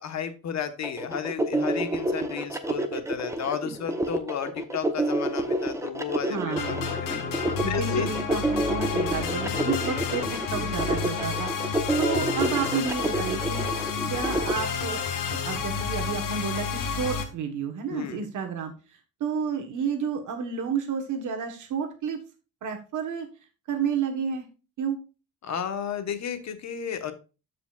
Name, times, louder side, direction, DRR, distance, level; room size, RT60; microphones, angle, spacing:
voice 1, 0.0-7.2 7.7-8.2 9.9-10.0 17.9-18.3 25.4-27.1, left 8 dB, 55° left, 9 dB, 1.3 m, -33 dB
sound 1, 0.8-14.5, right 1 dB, 10° right, 0.8 m, -28 dB
voice 2, 6.3-6.9 7.6-13.7 14.1-15.0 15.3-22.2 22.6-23.3 23.7-24.4 24.8-25.0, right 6 dB, 65° right, 4 dB, 1.3 m, -31 dB
sound 2, 6.6-17.2, left 6 dB, 75° left, 1.5 m, -30 dB
13.5 x 5.1 x 2.4 m, 0.32 s
cardioid pair, 150°, 33 cm